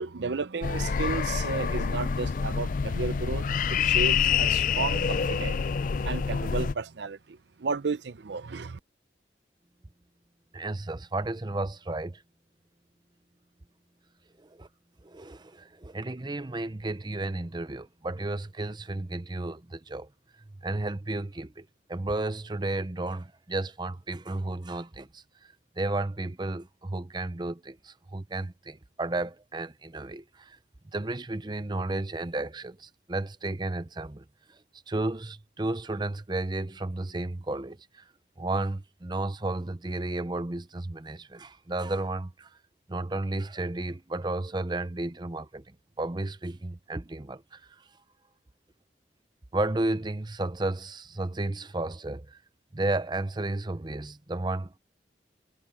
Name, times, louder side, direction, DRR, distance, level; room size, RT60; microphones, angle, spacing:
voice 1, 0.0-8.8, right 4 dB, 75° right, 0.6 m, -33 dB
sound 1, 0.6-6.7, left 6 dB, 50° left, 0.4 m, -27 dB
voice 2, 10.5-12.2 14.4-14.7 15.0-20.1 20.6-30.6 30.9-34.6 34.9-38.0 38.4-42.6 42.9-47.8 49.5-52.4 52.7-54.8, right 2 dB, 25° right, 0.7 m, -33 dB
head